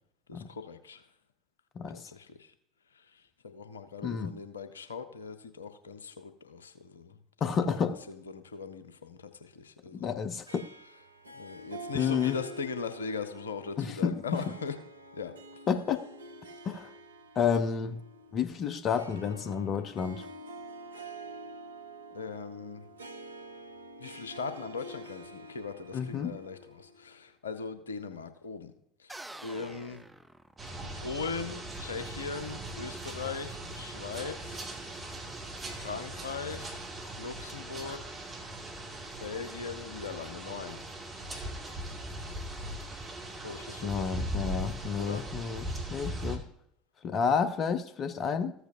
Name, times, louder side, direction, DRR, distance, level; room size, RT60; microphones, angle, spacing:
voice 1, 0.3-1.1 2.1-2.5 2.9-7.2 7.5-7.7 8.1-10.1 11.3-14.8 15.2-15.3 22.1-22.8 24.0-28.7 29.0-29.1 29.4-30.0 31.0-34.7 35.7-36.9 37.2-38.2 39.2-40.8 43.4-44.3 45.0-45.2, left 5 dB, 75° left, 0.6 m, -40 dB
voice 2, 1.8-2.1 4.0-4.3 7.4-8.0 9.9-10.7 11.9-12.4 13.8-14.5 15.7-16.0 16.6-16.9 17.4-18.0 18.3-20.3 25.9-26.3 43.8-46.4 47.0-48.5, left 6 dB, 40° left, 0.6 m, -30 dB
Harp, 10.5-27.2, right 1 dB, 80° right, 0.6 m, -47 dB
sound 1, 29.1-31.0, right 1 dB, 5° right, 0.5 m, -47 dB
sound 2, 30.6-46.4, right 1 dB, 25° right, 2.1 m, -39 dB
14.5 x 8.0 x 2.7 m
figure-of-eight pair, 70°, 0 cm